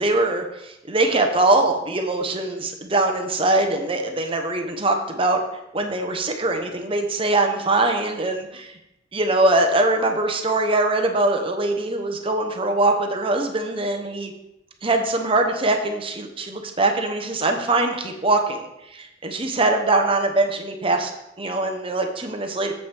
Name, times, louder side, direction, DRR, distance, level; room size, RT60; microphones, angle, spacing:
voice 1, 0.0-5.4 5.7-8.8 9.1-14.3 14.8-21.1 21.4-22.7, right 2 dB, 30° right, 4 dB, 0.9 m, -22 dB
8.4 x 7.7 x 3.4 m, 0.89 s
head